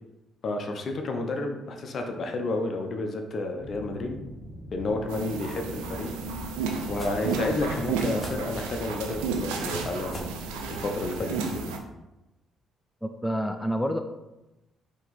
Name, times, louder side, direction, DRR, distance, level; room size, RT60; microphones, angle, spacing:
voice 1, 0.4-4.2 4.7-6.1 6.9-10.3 10.7-11.7, left 2 dB, 55° left, 4 dB, 0.7 m, -31 dB
sound 1, 3.6-8.6, equal, 20° right, 1.2 m, -45 dB
sound 2, 5.1-11.8, right 5 dB, 80° right, 0.4 m, -32 dB
sound 3, 5.9-11.3, left 1 dB, 30° left, 1.3 m, -43 dB
voice 2, 13.0-14.0, equal, 5° left, 6 dB, 0.4 m, -28 dB
4.3 x 2.9 x 4.0 m, 0.98 s
hypercardioid pair, 50°, 0 cm